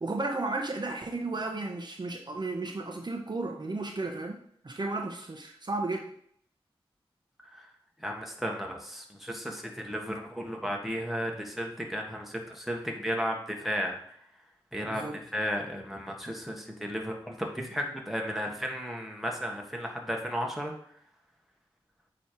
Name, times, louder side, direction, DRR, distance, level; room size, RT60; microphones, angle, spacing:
voice 1, 0.0-4.4 4.6-6.1 14.8-15.2, right 2 dB, 45° right, 1 dB, 1.1 m, -33 dB
voice 2, 8.0-14.2 14.7-20.7, equal, ahead, 0 dB, 1.6 m, -34 dB
8.4 x 3.3 x 4.6 m, 0.64 s
cardioid pair, 50°, 10 cm